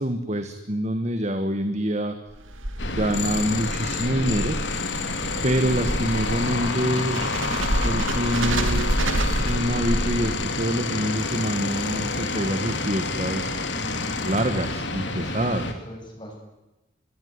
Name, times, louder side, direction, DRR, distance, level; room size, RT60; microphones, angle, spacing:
voice 1, 0.0-2.2 2.8-4.6 5.4-7.2 7.8-9.0 9.4-13.5 14.2-15.7, right 1 dB, 35° right, 8 dB, 1.7 m, -26 dB
sound 1, 2.3-10.6, right 1 dB, 85° right, 2.9 m, -28 dB
sound 2, 2.8-15.7, left 3 dB, 65° left, 3.1 m, -28 dB
voice 2, 7.1-7.4 13.6-14.3 15.6-16.4, equal, 25° left, 1 dB, 7.9 m, -40 dB
24.0 x 21.5 x 9.7 m, 1.0 s
head